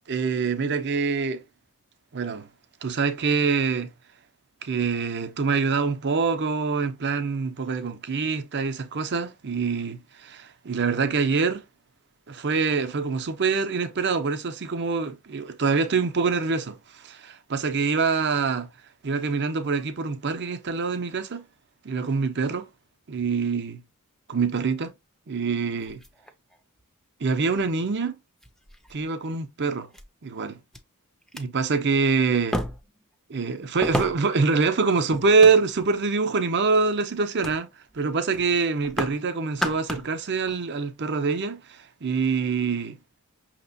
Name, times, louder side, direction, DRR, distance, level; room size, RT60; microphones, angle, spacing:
voice 1, 0.1-1.4 2.1-2.5 2.8-3.9 4.6-11.6 12.3-18.7 19.0-21.4 21.8-22.7 23.1-23.8 24.3-24.9 25.3-26.0 27.2-28.1 28.9-29.9 30.2-30.6 31.3-32.6 33.3-37.7 37.9-43.0, right 4 dB, 50° right, 0.7 m, -25 dB
sound 1, 25.8-26.8 27.7-27.8 28.4-29.0 29.9-30.0 30.7-30.8 31.2-31.4 32.5-33.0 33.8-34.4 35.1-36.0 36.5-36.8 37.4-37.6 37.9-38.1 38.3-39.2 39.5-40.1 40.5-40.6, equal, ahead, 0.5 m, -32 dB
6.1 x 2.9 x 2.6 m
head